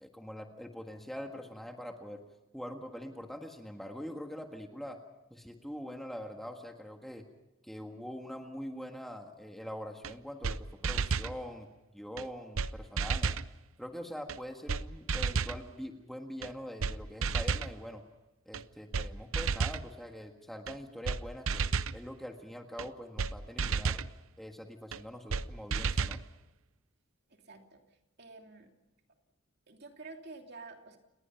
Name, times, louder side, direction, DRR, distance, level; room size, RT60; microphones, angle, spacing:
voice 1, 0.0-2.2 2.5-5.0 5.3-7.2 7.6-11.7 11.9-13.4 13.8-18.0 18.4-21.6 21.9-24.0 24.4-26.2, equal, ahead, 3 dB, 1.6 m, -43 dB
sound 1, 10.0-10.1 10.4-10.6 10.8-11.3 12.2-12.3 12.6-12.7 13.0-13.5 14.3-14.4 14.7-14.8 15.1-15.6 16.4-16.5 16.8-17.0 17.2-17.7 18.5-18.6 18.9-19.1 19.3-19.8 20.7-20.8 21.1-21.2 21.5-22.0 22.8-22.9 23.2-23.3 23.6-24.1 24.9-25.0 25.3-25.4 25.7-26.2, right 5 dB, 80° right, 0.7 m, -31 dB
voice 2, 27.3-27.8 28.2-28.7 29.7-31.0, right 3 dB, 50° right, 3 dB, 2.9 m, -49 dB
30.0 x 19.5 x 5.8 m, 1.0 s
head